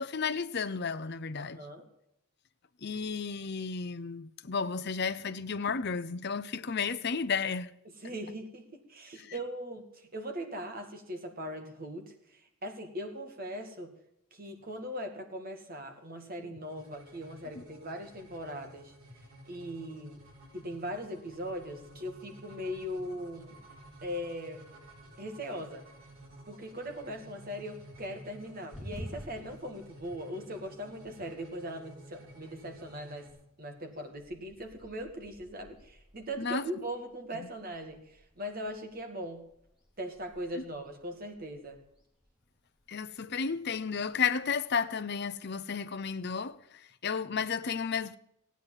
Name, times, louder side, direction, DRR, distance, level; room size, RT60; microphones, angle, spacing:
voice 1, 0.0-1.7 2.8-7.7 9.2-9.3 16.4-16.5 17.6-17.7 36.4-36.7 42.9-48.2, left 5 dB, 50° left, 0.7 m, -33 dB
voice 2, 1.4-1.9 8.0-13.9 14.3-18.9 19.5-20.2 20.5-23.6 24.0-24.7 25.2-25.8 26.5-33.3 33.6-39.4 40.0-41.8, equal, 40° right, 2.2 m, -40 dB
sound 1, 16.6-33.3, right 1 dB, 70° right, 7.8 m, -53 dB
sound 2, 28.7-46.6, equal, 5° right, 3.2 m, -54 dB
16.5 x 9.4 x 7.3 m
head